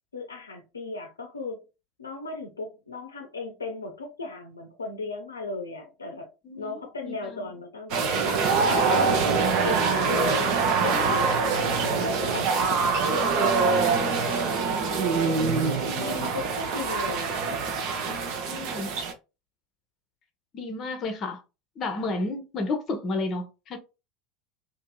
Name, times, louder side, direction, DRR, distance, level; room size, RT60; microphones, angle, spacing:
voice 1, 0.1-1.6 2.0-6.3 6.6-9.1 9.6-11.6 12.0-17.6, left 3 dB, 80° left, 0.5 m, -36 dB
voice 2, 6.4-7.5 10.8-11.2 15.9-16.3 18.1-18.9 20.5-21.4 21.8-23.8, left 2 dB, 35° left, 0.6 m, -32 dB
sound 1, 7.9-19.1, right 5 dB, 50° right, 0.5 m, -24 dB
2.7 x 2.5 x 2.2 m
figure-of-eight pair, 75°, 0 cm